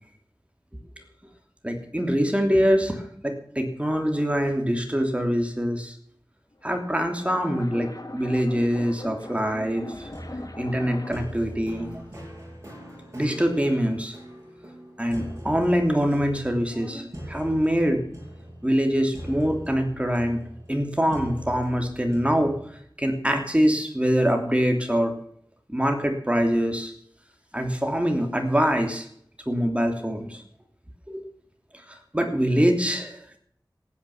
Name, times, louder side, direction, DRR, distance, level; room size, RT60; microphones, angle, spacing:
voice 1, 1.6-5.9 6.6-10.1 10.6-11.9 13.1-14.2 15.0-18.0 18.6-20.4 20.7-22.6 23.0-25.1 25.7-26.9 27.5-29.1 29.5-30.4 31.1-31.3 31.9-33.4, equal, 15° right, 4 dB, 3.0 m, -24 dB
sound 1, 6.5-11.4, left 1 dB, 50° left, 2.2 m, -40 dB
sound 2, 9.9-22.8, equal, 35° right, 7.8 m, -42 dB
16.0 x 9.7 x 7.2 m, 0.68 s
wide cardioid pair, 50°, 8 cm